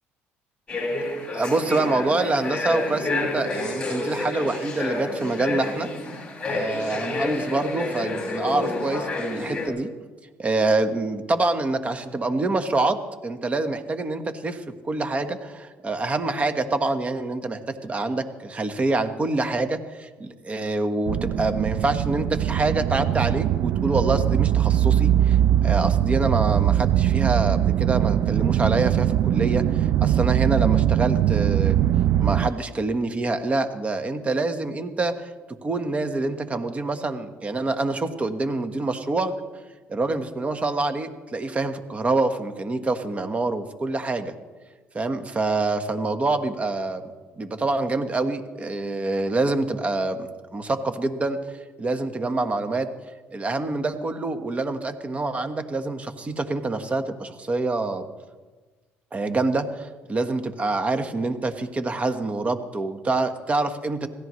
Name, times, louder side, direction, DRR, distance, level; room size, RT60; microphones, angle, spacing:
sound 1, 0.7-9.7, left 2 dB, 20° left, 6.3 m, -29 dB
voice 1, 1.1-5.9 6.4-9.9 10.4-31.9 32.2-35.3 35.6-39.3 39.9-44.3 44.9-47.0 47.4-51.4 51.8-52.9 53.3-58.0 59.1-64.1, right 2 dB, 25° right, 8 dB, 1.4 m, -26 dB
sound 2, 21.1-32.5, right 11 dB, 65° right, 0.4 m, -21 dB
25.5 x 16.5 x 3.2 m, 1.3 s
cardioid pair, 95°, 5 cm